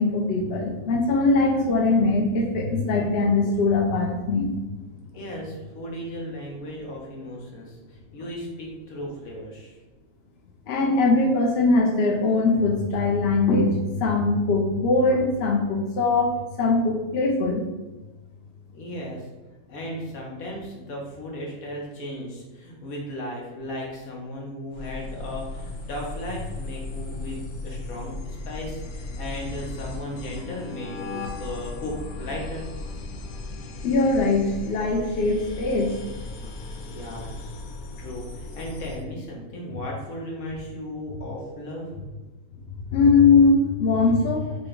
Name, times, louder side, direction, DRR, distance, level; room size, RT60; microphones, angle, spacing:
voice 1, 0.0-4.5 10.7-16.3 16.6-17.6 33.8-35.9 42.9-44.5, left 3 dB, 55° left, 0 dB, 0.8 m, -21 dB
voice 2, 5.1-9.8 18.7-19.3 19.7-32.7 36.9-37.5 38.0-41.9, left 1 dB, 75° left, -2 dB, 1.5 m, -36 dB
sound 1, 24.7-39.0, left 2 dB, 90° left, 1.2 m, -36 dB
5.8 x 2.3 x 3.8 m, 1.1 s
omnidirectional pair, 1.5 m